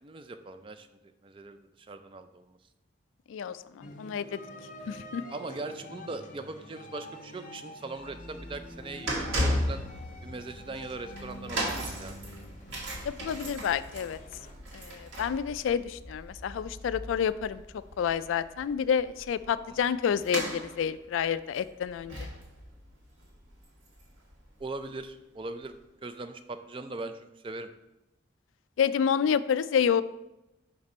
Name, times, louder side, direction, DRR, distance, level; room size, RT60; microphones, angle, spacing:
voice 1, 0.0-2.6 5.3-9.8 10.2-12.1 19.7-19.8 24.6-25.7 26.0-27.7, right 3 dB, 25° right, 10 dB, 0.4 m, -40 dB
voice 2, 3.3-4.4 4.9-5.2 13.0-14.2 14.7-17.6 18.0-22.3 28.8-30.0, left 7 dB, 90° left, 14 dB, 0.3 m, -29 dB
sound 1, 3.8-14.5, left 1 dB, 40° left, 0.5 m, -47 dB
sound 2, 8.0-24.3 24.6-24.8 25.6-25.7, equal, 85° right, 1.8 m, -37 dB
5.9 x 5.2 x 4.2 m, 0.93 s
head